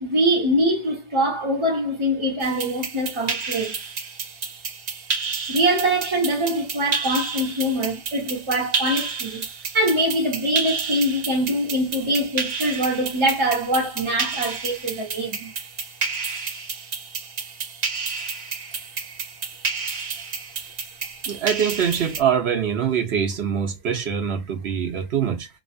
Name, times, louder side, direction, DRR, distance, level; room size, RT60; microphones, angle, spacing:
voice 1, 0.0-3.8 5.5-9.4 9.7-15.5, right 1 dB, 25° right, 1.2 m, -23 dB
sound 1, 2.4-22.2, right 5 dB, 45° right, 0.7 m, -31 dB
voice 2, 21.3-25.5, right 8 dB, 70° right, 1.1 m, -24 dB
3.1 x 2.4 x 2.4 m
omnidirectional pair, 1.1 m